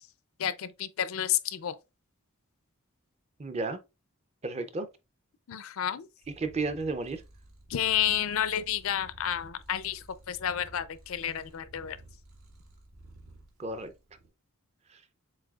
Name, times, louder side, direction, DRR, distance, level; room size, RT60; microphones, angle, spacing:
voice 1, 0.4-1.7 5.5-6.1 7.7-12.0, left 10 dB, 70° left, 0.4 m, -30 dB
voice 2, 3.4-3.8 4.4-4.9 6.4-7.2 13.6-13.9, right 3 dB, 30° right, 0.5 m, -32 dB
Purr, 6.2-14.3, right 1 dB, 75° right, 1.6 m, -54 dB
7.3 x 2.7 x 2.3 m
head